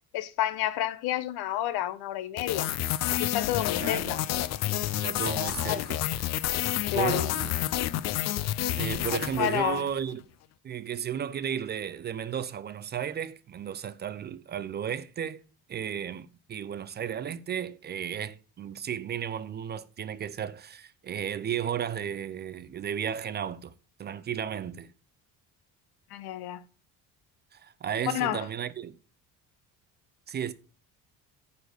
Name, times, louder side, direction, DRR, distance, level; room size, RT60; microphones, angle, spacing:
voice 1, 0.1-2.7 3.2-4.2 5.7-5.8 6.9-7.3 9.4-9.8 26.1-26.6 28.1-28.4, left 13 dB, 85° left, 1.0 m, -30 dB
sound 1, 2.4-9.9, left 13 dB, 45° left, 0.4 m, -29 dB
voice 2, 3.8-4.2 5.0-6.3 6.9-7.6 8.8-10.2 10.6-15.4 15.7-23.7 24.0-24.9 27.5-28.9 30.3-30.5, right 8 dB, 30° right, 0.4 m, -34 dB
9.5 x 4.0 x 6.7 m
cardioid pair, 165°, 37 cm